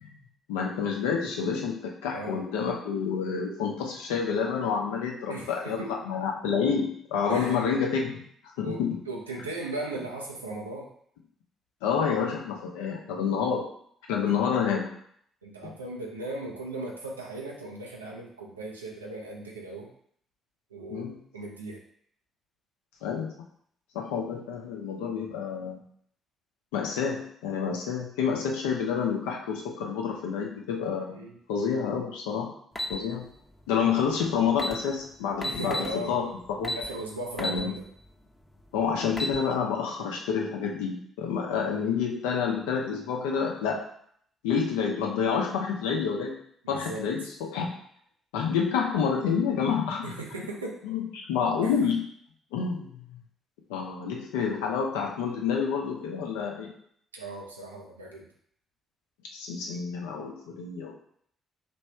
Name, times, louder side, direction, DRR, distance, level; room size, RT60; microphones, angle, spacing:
voice 1, 0.5-8.2 8.6-9.0 11.8-13.6 14.1-14.9 15.6-15.7 20.9-21.2 23.0-23.3 23.9-25.8 26.7-31.2 31.5-32.5 32.9-33.2 33.7-36.3 36.6-36.8 37.4-37.7 38.7-43.9 44.4-46.3 46.7-47.7 48.3-50.1 50.8-52.0 52.5-52.9 53.7-56.7 59.3-60.9, left 6 dB, 70° left, 0 dB, 0.7 m, -28 dB
voice 2, 2.1-2.4 5.3-5.9 7.3-7.6 8.6-10.9 14.2-14.3 15.4-19.9 20.7-21.8 31.1-31.3 35.4-36.2 36.7-37.9 46.6-47.1 50.0-50.8 51.6-51.7 57.1-58.3, right 2 dB, 85° right, -1 dB, 0.6 m, -37 dB
sound 1, 32.7-32.9 34.2-34.3 34.5-34.8 35.4-35.9 36.6-36.9 37.4-37.6 38.0-38.1 38.9-39.4, left 1 dB, 15° left, 0.7 m, -31 dB
3.1 x 2.6 x 4.4 m, 0.65 s
figure-of-eight pair, 45°, 0 cm